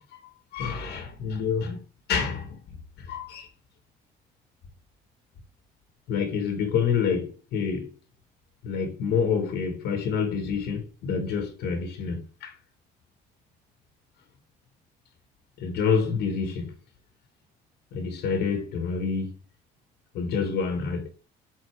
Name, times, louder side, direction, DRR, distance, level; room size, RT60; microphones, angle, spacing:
voice 1, 0.1-1.8 2.1-2.6 3.0-3.5 6.1-7.9 8.6-12.5 15.6-16.7 17.9-19.3 20.1-21.1, left 6 dB, 75° left, 1.4 m, -28 dB
7.8 x 4.0 x 3.2 m
cardioid pair, 110°, 17 cm